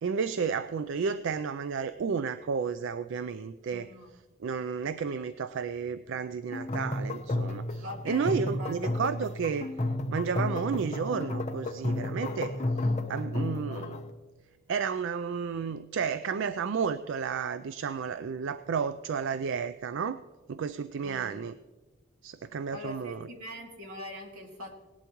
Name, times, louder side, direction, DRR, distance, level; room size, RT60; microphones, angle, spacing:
voice 1, 0.0-3.9 4.4-9.7 10.1-14.0 14.7-20.2 20.5-21.5 22.2-23.3, right 6 dB, 55° right, 12 dB, 0.3 m, -32 dB
voice 2, 3.7-4.1 7.8-9.0 21.0-21.4 22.7-24.7, equal, 75° right, 1 dB, 2.2 m, -43 dB
sound 1, 6.5-14.1, left 1 dB, 30° left, 0.7 m, -32 dB
18.5 x 11.5 x 3.0 m, 1.2 s
head